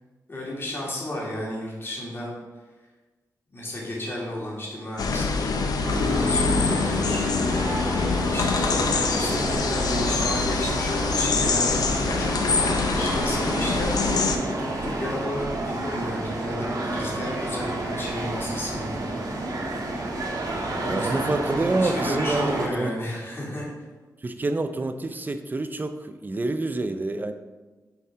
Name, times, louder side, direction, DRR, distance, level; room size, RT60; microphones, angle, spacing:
voice 1, 0.3-2.3 3.5-5.6 6.0-7.2 8.3-19.8 20.4-21.3 21.8-23.7, left 1 dB, 35° left, -4 dB, 2.3 m, -33 dB
sound 1, 5.0-14.4, left 4 dB, 70° left, 0.7 m, -24 dB
sound 2, 5.8-22.7, right 2 dB, 65° right, 1.4 m, -30 dB
voice 2, 20.9-22.9 24.2-27.3, right 2 dB, 30° right, 8 dB, 0.5 m, -27 dB
7.1 x 4.3 x 4.9 m, 1.2 s
wide cardioid pair, 115°, 7 cm